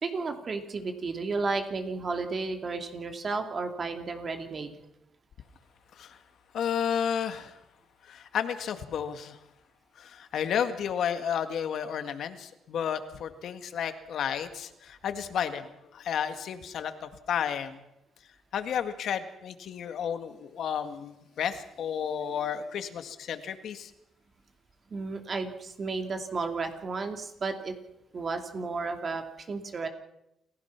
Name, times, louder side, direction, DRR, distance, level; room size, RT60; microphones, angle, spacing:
voice 1, 0.0-4.7 24.9-27.7 28.1-29.9, right 4 dB, 40° right, 5 dB, 2.9 m, -33 dB
voice 2, 6.5-7.6 8.0-9.4 10.0-17.8 18.5-23.9, left 8 dB, 70° left, 9 dB, 1.8 m, -32 dB
28.5 x 16.0 x 6.0 m, 0.85 s
cardioid pair, 100°, 0 cm